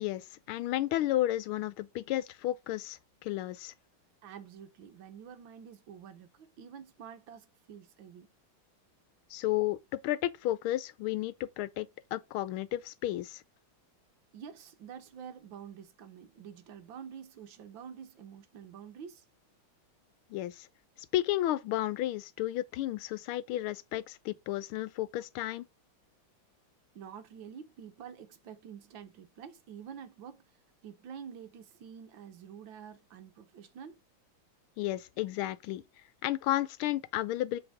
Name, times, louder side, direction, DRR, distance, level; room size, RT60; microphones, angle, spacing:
voice 1, 0.0-3.7 9.3-13.4 20.3-20.7 21.1-25.6 34.8-35.8 36.2-37.6, left 14 dB, 90° left, 1.5 m, -32 dB
voice 2, 4.2-8.3 14.3-19.2 26.9-30.4 30.8-34.0, right 8 dB, 70° right, 1.6 m, -48 dB
7.0 x 3.5 x 4.8 m
omnidirectional pair, 2.3 m